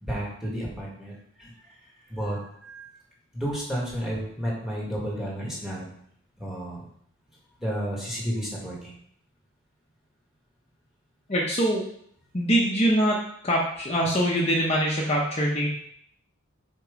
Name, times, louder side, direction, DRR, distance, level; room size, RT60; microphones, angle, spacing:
voice 1, 0.0-1.1 1.4-1.5 2.1-2.9 3.3-5.9 6.4-6.8 7.6-8.9, equal, ahead, -4 dB, 1.9 m, -31 dB
voice 2, 11.3-11.8 12.3-13.2 13.4-15.7, equal, 30° left, -4 dB, 0.9 m, -23 dB
5.9 x 4.5 x 5.2 m, 0.67 s
head